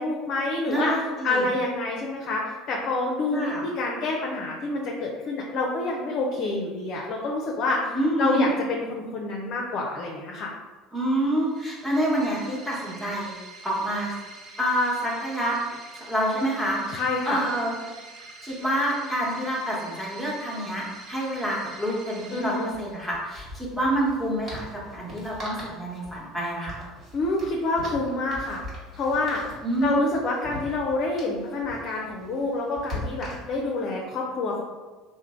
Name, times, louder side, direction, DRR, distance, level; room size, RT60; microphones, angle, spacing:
voice 1, 0.0-0.9 1.2-10.5 16.9-17.4 22.3-22.7 27.1-28.6 29.0-29.4 29.8-34.6, left 2 dB, 50° left, -1 dB, 0.5 m, -27 dB
voice 2, 0.7-1.5 3.3-3.6 7.9-8.5 10.9-13.4 13.6-14.2 14.6-15.6 15.9-17.7 18.4-26.8 29.6-30.1, right 1 dB, ahead, -5 dB, 1.1 m, -27 dB
sound 1, 11.4-23.3, right 3 dB, 50° right, 0.5 m, -45 dB
sound 2, 20.7-20.8 21.0-21.1 22.6-33.8, left 1 dB, 35° right, 1.4 m, -41 dB
3.1 x 2.1 x 3.6 m, 1.3 s
supercardioid pair, 90°, 0 cm